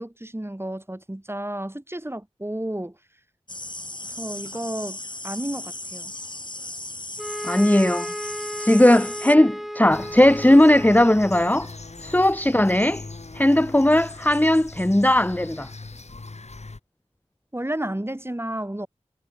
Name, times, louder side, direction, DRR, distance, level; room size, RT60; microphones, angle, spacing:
voice 1, 0.0-3.0 4.2-5.0 5.2-6.1 17.5-18.9, right 1 dB, 20° right, 6.2 m, -31 dB
sound 1, 3.5-9.4, left 2 dB, 40° left, 5.9 m, -36 dB
sound 2, 7.2-11.6, equal, ahead, 6.7 m, -34 dB
voice 2, 7.4-8.1 8.6-11.7 12.0-13.0 13.3-15.7, left 1 dB, 15° left, 1.2 m, -18 dB
sound 3, 9.9-16.8, left 3 dB, 70° left, 6.6 m, -39 dB
wide cardioid pair, 45°, 12 cm